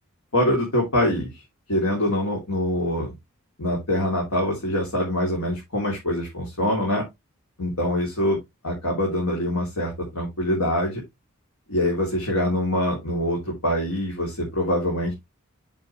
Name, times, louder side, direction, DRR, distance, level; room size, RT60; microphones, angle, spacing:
voice 1, 0.3-1.3 1.7-3.2 3.6-7.1 7.6-8.4 8.6-11.0 11.7-15.1, left 1 dB, 80° left, -1 dB, 3.2 m, -24 dB
8.3 x 6.0 x 3.2 m, 0.20 s
head